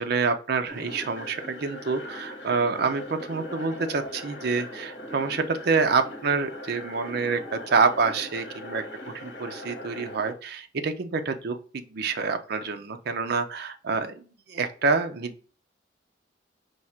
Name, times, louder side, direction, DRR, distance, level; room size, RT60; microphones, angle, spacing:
voice 1, 0.0-8.8 9.1-15.5, right 4 dB, 60° right, 7 dB, 0.5 m, -27 dB
sound 1, 0.7-10.3, left 1 dB, 65° left, 1.2 m, -40 dB
4.7 x 2.4 x 4.3 m, 0.39 s
head